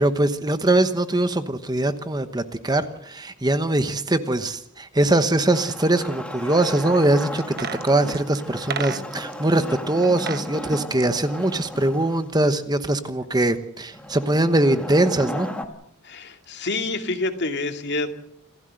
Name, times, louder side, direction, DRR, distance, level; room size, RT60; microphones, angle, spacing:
voice 1, 0.0-15.5, right 1 dB, 20° right, 10 dB, 1.1 m, -22 dB
Wood, 5.5-12.3 13.9-15.7, left 1 dB, 5° left, 2.0 m, -35 dB
sound 1, 7.4-9.4 10.0-10.5 10.8-12.1 12.4-12.5, right 6 dB, 45° right, 1.1 m, -34 dB
voice 2, 16.0-18.1, left 2 dB, 50° left, 6 dB, 2.4 m, -27 dB
27.5 x 15.5 x 7.8 m, 0.75 s
head